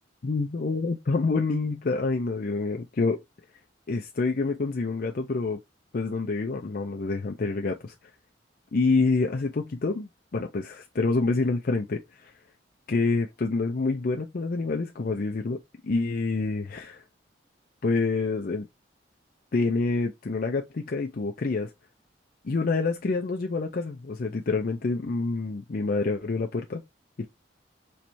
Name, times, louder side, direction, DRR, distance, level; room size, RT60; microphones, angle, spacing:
voice 1, 0.2-3.2 3.9-5.6 5.9-7.9 8.7-12.3 12.9-15.6 15.8-17.0 17.8-18.7 19.5-21.7 22.4-26.8 27.2-27.3, left 3 dB, 50° left, 0.5 m, -27 dB
4.5 x 3.2 x 2.7 m
head